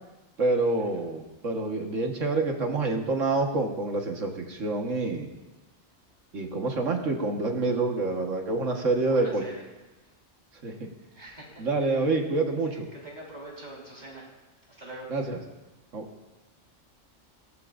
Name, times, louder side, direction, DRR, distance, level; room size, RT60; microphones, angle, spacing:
voice 1, 0.4-5.3 6.3-9.4 10.6-10.9 11.6-12.9 15.1-15.4 15.9-16.1, right 3 dB, 70° right, 2 dB, 1.9 m, -27 dB
voice 2, 8.7-9.6 10.0-10.1 11.1-12.1 12.6-14.3 14.7-15.1, right 1 dB, 35° right, -4 dB, 4.6 m, -44 dB
21.5 x 18.0 x 2.6 m, 1.1 s
omnidirectional pair, 1.3 m